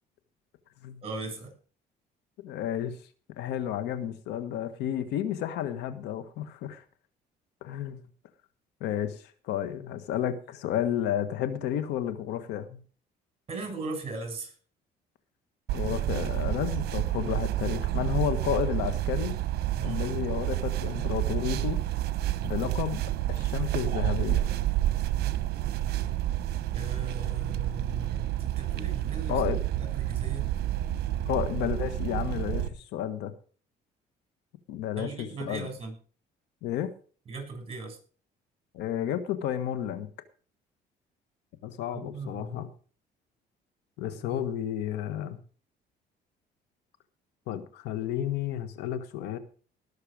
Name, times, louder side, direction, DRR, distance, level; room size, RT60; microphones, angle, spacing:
voice 1, 1.0-1.5 13.5-14.5 19.7-20.1 26.7-29.4 29.8-30.5 35.0-35.9 37.3-38.0 41.9-42.6 44.1-44.4, right 3 dB, 35° right, 4 dB, 6.8 m, -38 dB
voice 2, 2.4-2.9 3.4-6.8 7.6-8.0 8.8-12.8 15.7-19.4 19.8-21.8 22.4-23.0 23.3-24.5 29.3-29.6 31.3-33.3 34.7-35.7 36.6-36.9 38.7-40.1 41.6-42.7 44.0-45.4 47.5-49.4, left 10 dB, 85° left, 11 dB, 1.5 m, -31 dB
sound 1, 15.7-32.7, right 13 dB, 70° right, 1.0 m, -29 dB
19.0 x 6.8 x 5.0 m, 0.40 s
cardioid pair, 110°, 17 cm